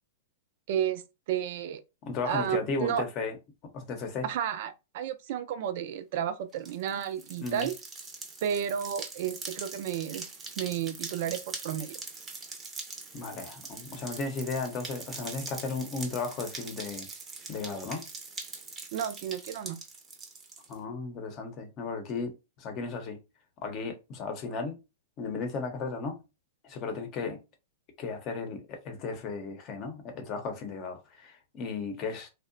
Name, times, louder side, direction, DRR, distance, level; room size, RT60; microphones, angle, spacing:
voice 1, 0.7-1.0 1.3-1.8 2.2-3.1 4.2-7.7 8.4-10.3 10.6-12.0 18.9-19.8, right 9 dB, 60° right, 0.4 m, -32 dB
voice 2, 2.0-3.4 3.7-4.3 7.4-7.7 13.1-17.1 17.5-18.0 20.7-23.2 23.6-24.8 25.2-26.2 26.6-27.4 28.0-32.3, left 4 dB, 35° left, 0.7 m, -35 dB
sound 1, 6.5-20.7, right 4 dB, 20° right, 0.6 m, -42 dB
2.8 x 2.1 x 2.5 m
hypercardioid pair, 130°, 0 cm